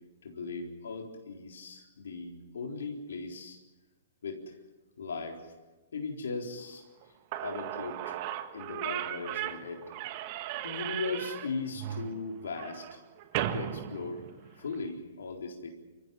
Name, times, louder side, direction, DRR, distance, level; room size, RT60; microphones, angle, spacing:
voice 1, 0.2-3.6 4.2-4.6 5.0-5.4 5.9-6.8 7.4-8.2 8.5-9.9 10.6-13.0 13.5-14.2 14.5-15.7, left 4 dB, 70° left, 2 dB, 4.2 m, -38 dB
Slam / Squeak, 7.0-7.1 7.3-14.8, right 12 dB, 40° right, 1.7 m, -37 dB
29.0 x 15.0 x 9.1 m, 1.1 s
figure-of-eight pair, 120°, 0 cm